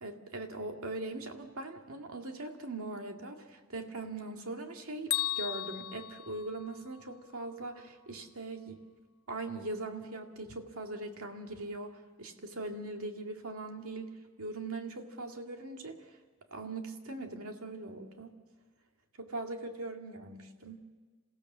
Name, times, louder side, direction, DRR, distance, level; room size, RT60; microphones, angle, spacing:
voice 1, 0.0-8.8 9.3-14.1 14.4-16.2 16.5-18.3 19.2-20.8, right 2 dB, 85° right, 3 dB, 2.2 m, -41 dB
Bell, 5.1-7.1, left 16 dB, 85° left, 0.8 m, -36 dB
27.5 x 16.0 x 7.4 m, 1.4 s
head